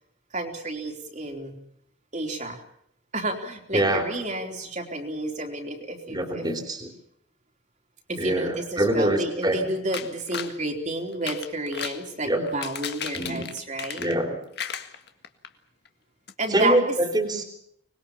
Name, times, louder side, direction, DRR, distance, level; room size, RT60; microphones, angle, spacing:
voice 1, 0.3-1.6 2.1-2.6 3.1-6.5 8.1-14.0 16.4-17.0 17.3-17.4, right 2 dB, 40° right, 2 dB, 3.5 m, -31 dB
voice 2, 3.7-4.0 6.1-6.9 8.2-9.6 12.2-12.4 13.1-13.4 13.9-14.4 16.5-17.4, right 1 dB, 20° right, 4 dB, 3.4 m, -24 dB
sound 1, 9.9-10.6 11.1-12.0 12.5-14.3 14.6-15.5 15.9-16.0 16.3-16.4, left 8 dB, 55° left, 1.8 m, -35 dB
25.5 x 21.0 x 7.2 m, 0.71 s
head